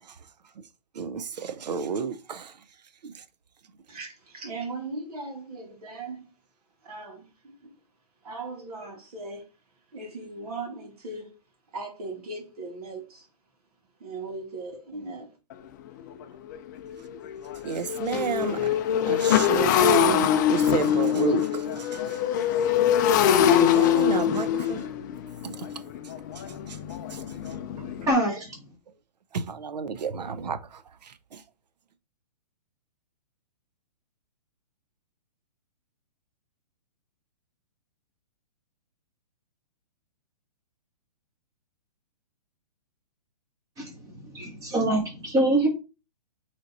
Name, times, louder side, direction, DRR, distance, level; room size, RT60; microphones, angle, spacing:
voice 1, 1.0-2.5 3.0-3.1 17.6-22.2 22.6-22.9 23.6-24.8 25.4-25.7 26.7-26.8 27.1-27.2 27.8-27.9 29.3-30.8 31.3-31.4, right 5 dB, 85° right, 0.7 m, -30 dB
voice 2, 3.9-6.3 6.8-7.8 8.2-9.5 9.9-11.4 11.7-13.3 14.0-15.4, right 3 dB, 65° right, 2.0 m, -38 dB
Motorcycle, 15.5-15.6 16.1-16.2 16.5-28.1, left 10 dB, 30° left, 0.4 m, -24 dB
voice 3, 27.4-28.7 43.8-45.7, right 1 dB, 15° right, 1.4 m, -26 dB
3.8 x 3.4 x 4.1 m
hypercardioid pair, 150°, 21 cm